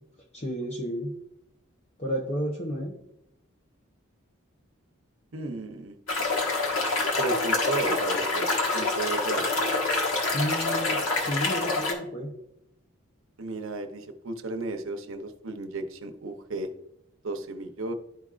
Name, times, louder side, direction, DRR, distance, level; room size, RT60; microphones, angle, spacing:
voice 1, 0.3-1.1 2.0-3.0 10.3-12.3, equal, 30° left, 0 dB, 0.7 m, -31 dB
voice 2, 5.3-5.9 7.2-9.5 13.4-16.7 17.2-17.9, right 2 dB, 70° right, 6 dB, 0.8 m, -34 dB
sound 1, 6.1-11.9, left 3 dB, 85° left, 1.7 m, -26 dB
12.0 x 4.9 x 2.5 m, 0.80 s
head